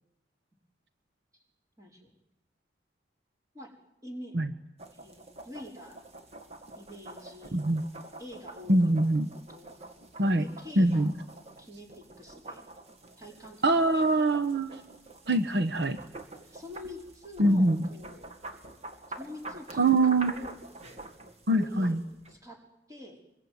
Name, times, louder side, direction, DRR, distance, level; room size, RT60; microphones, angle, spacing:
voice 1, 1.8-2.2 3.5-3.7 4.0-4.3 5.0-6.0 6.8-7.6 8.2-9.7 10.4-11.1 11.6-12.7 13.2-14.2 16.5-18.2 19.2-21.1 21.5-22.0 22.3-22.6 22.9-23.2, left 1 dB, 20° right, 1 dB, 5.0 m, -46 dB
sound 1, 4.8-22.4, right 2 dB, 40° right, 2.5 m, -47 dB
voice 2, 7.5-7.8 8.7-9.3 10.2-10.4 10.8-11.1 13.6-14.8 15.3-16.0 17.4-17.8 19.8-20.3 21.5-22.0, right 2 dB, 65° right, 8 dB, 1.2 m, -23 dB
25.0 x 22.5 x 9.6 m, 0.86 s
head